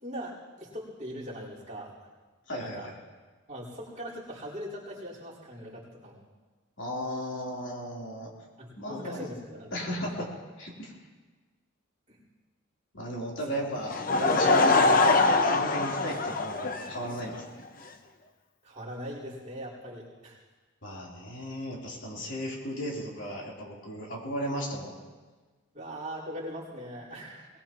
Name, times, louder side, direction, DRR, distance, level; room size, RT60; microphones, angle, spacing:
voice 1, 0.0-1.9 2.6-2.9 3.5-6.2 8.6-10.3 12.1-12.2 13.5-13.6 18.6-20.4 25.7-27.5, equal, 35° right, -7 dB, 4.6 m, -41 dB
voice 2, 2.5-2.9 6.8-8.3 8.8-9.3 9.7-10.3 10.6-10.9 12.9-17.6 20.8-25.0, equal, 55° left, -4 dB, 3.6 m, -36 dB
Laughter / Crowd, 13.9-17.4, left 3 dB, 40° left, 0.8 m, -23 dB
22.5 x 20.0 x 3.1 m, 1.3 s
head